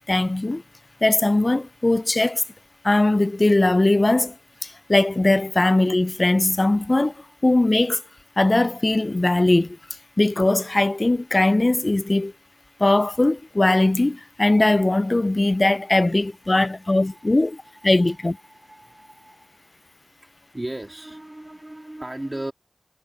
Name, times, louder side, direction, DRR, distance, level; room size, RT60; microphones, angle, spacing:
voice 1, 0.1-0.6 1.0-2.4 2.8-4.3 4.6-7.1 7.4-8.0 8.4-9.8 10.2-12.3 12.8-18.4, left 2 dB, 45° left, 0.3 m, -20 dB
voice 2, 6.9-7.4 9.2-9.3 16.4-19.6 20.2-22.5, right 1 dB, 30° right, 2.8 m, -38 dB
wide cardioid pair, 50°, 0 cm